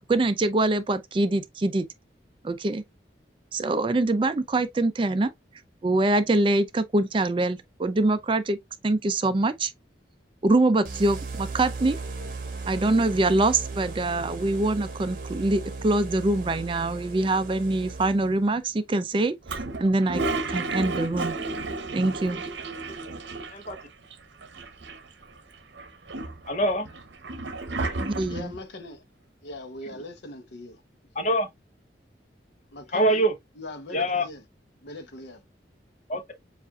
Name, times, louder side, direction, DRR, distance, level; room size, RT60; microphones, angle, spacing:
voice 1, 0.1-1.8 2.4-2.8 3.5-5.3 5.8-8.6 8.8-9.7 10.4-12.0 12.7-20.2 20.5-21.4 21.9-22.4 28.0-28.5, right 2 dB, 30° right, 0.4 m, -24 dB
sound 1, 10.8-18.5, right 3 dB, 50° right, 1.2 m, -36 dB
Toilet flush, 19.5-23.8 24.1-24.2 24.4-25.2 25.8-28.6, right 2 dB, 85° right, 0.8 m, -32 dB
voice 2, 26.5-26.9 31.2-31.5 32.9-33.3 33.9-34.3 36.1-36.3, right 1 dB, 40° left, 0.8 m, -24 dB
voice 3, 28.3-29.0 29.4-30.8 32.7-33.2 33.6-34.4 34.8-35.4, left 1 dB, 75° left, 0.8 m, -40 dB
7.2 x 2.5 x 2.3 m
head